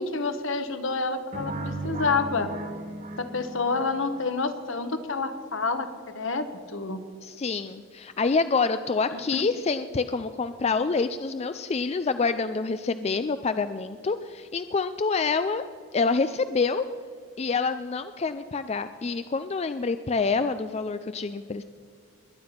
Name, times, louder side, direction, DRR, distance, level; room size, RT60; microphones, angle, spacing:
voice 1, 0.0-2.5 3.2-5.9 6.1-7.0 9.3-9.4, left 4 dB, 65° left, 9 dB, 1.2 m, -28 dB
sound 1, 1.3-4.2, right 2 dB, 40° right, 1.8 m, -36 dB
voice 2, 7.2-15.6 15.9-16.9 17.4-21.6, left 4 dB, 30° left, 11 dB, 0.3 m, -27 dB
21.5 x 9.6 x 5.8 m, 2.1 s
head